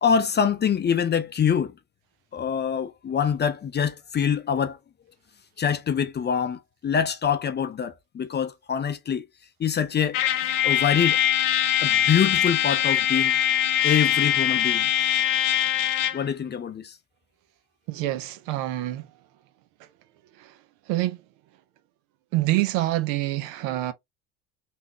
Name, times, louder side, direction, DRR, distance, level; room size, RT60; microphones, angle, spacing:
voice 1, 0.0-1.7 2.3-4.8 5.6-9.2 9.6-10.2 10.6-11.2 11.8-13.4 13.8-14.9 16.1-16.9, left 7 dB, 25° left, 0.5 m, -25 dB
Trumpet, 10.1-16.3, left 11 dB, 85° left, 0.8 m, -22 dB
voice 2, 17.9-19.1 20.4-20.5 20.9-21.2 22.3-23.9, right 16 dB, 70° right, 0.8 m, -26 dB
3.5 x 2.8 x 3.0 m
hypercardioid pair, 80°, 43 cm